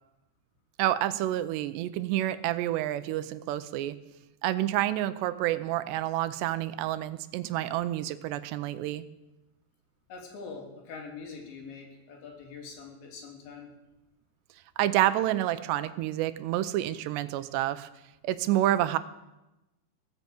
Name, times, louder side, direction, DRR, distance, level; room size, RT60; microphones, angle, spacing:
voice 1, 0.8-4.0 4.4-9.0 14.8-17.9 18.2-19.0, right 13 dB, 85° right, 13 dB, 2.9 m, -28 dB
voice 2, 10.1-13.7, left 4 dB, 90° left, 0 dB, 5.2 m, -44 dB
17.0 x 11.0 x 7.7 m, 0.99 s
omnidirectional pair, 4.9 m